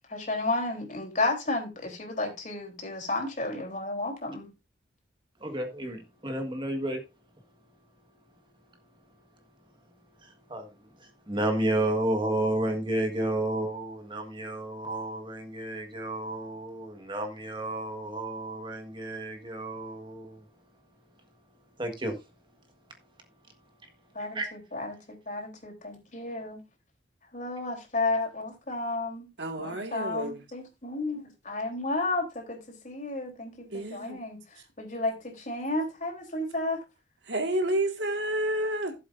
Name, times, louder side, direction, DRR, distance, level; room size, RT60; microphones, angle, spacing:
voice 1, 0.1-4.5 24.1-26.6 27.2-29.3 29.6-36.8, left 2 dB, 45° left, 3.5 m, -32 dB
voice 2, 5.4-7.0 10.5-10.7 11.0-20.4 21.8-22.2 24.3-24.5, right 1 dB, 25° right, 1.6 m, -31 dB
voice 3, 29.4-30.4 33.7-34.2 37.3-38.9, right 1 dB, 70° right, 1.9 m, -30 dB
15.5 x 7.7 x 2.6 m
head